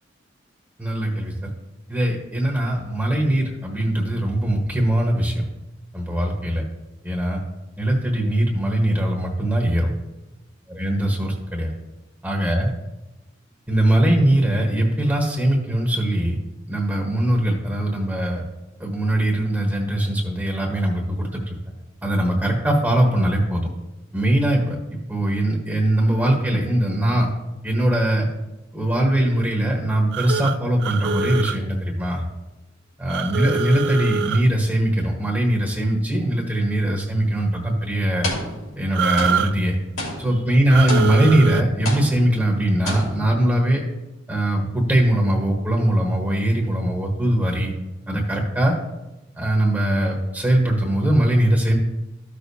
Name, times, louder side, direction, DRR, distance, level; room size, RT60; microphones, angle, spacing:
voice 1, 0.8-1.5 1.9-5.4 5.9-6.6 7.0-7.4 7.8-9.9 10.7-11.7 12.2-12.7 13.7-16.4 16.7-18.4 18.8-21.6 22.0-23.7 24.1-27.3 27.6-28.3 28.7-32.2 33.0-38.3 38.8-39.7 40.2-43.8 44.3-47.7 48.1-48.8 49.4-51.8, right 1 dB, 10° right, 0 dB, 1.2 m, -21 dB
sound 1, 30.1-31.6 33.1-34.5 38.9-39.5 40.7-41.6, right 6 dB, 60° right, 0.4 m, -24 dB
sound 2, 37.2-37.4 38.2-38.9 39.2-41.5 41.9-42.6 42.9-43.4, left 1 dB, 80° left, 3.2 m, -31 dB
13.5 x 6.5 x 2.7 m, 1.0 s
head